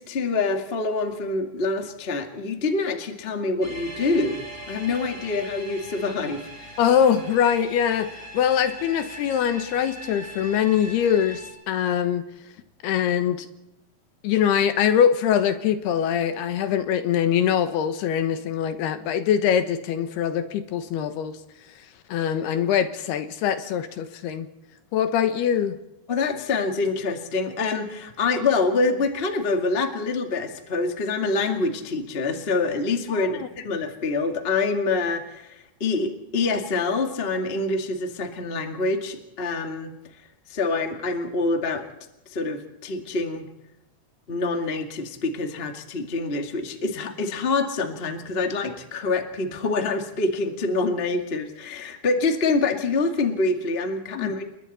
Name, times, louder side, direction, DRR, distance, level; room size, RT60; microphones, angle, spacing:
voice 1, 0.0-6.7 26.1-39.9 40.5-41.8 42.3-43.4 44.3-54.4, left 3 dB, 25° left, 5 dB, 1.2 m, -26 dB
sound 1, 3.6-11.5, right 1 dB, 10° right, 5.2 m, -41 dB
voice 2, 6.8-12.2 12.8-13.5 14.2-21.4 22.1-24.5 24.9-25.8 33.1-33.5 54.1-54.3, left 9 dB, 75° left, 9 dB, 3.2 m, -23 dB
29.5 x 22.0 x 4.3 m, 0.90 s
omnidirectional pair, 4.7 m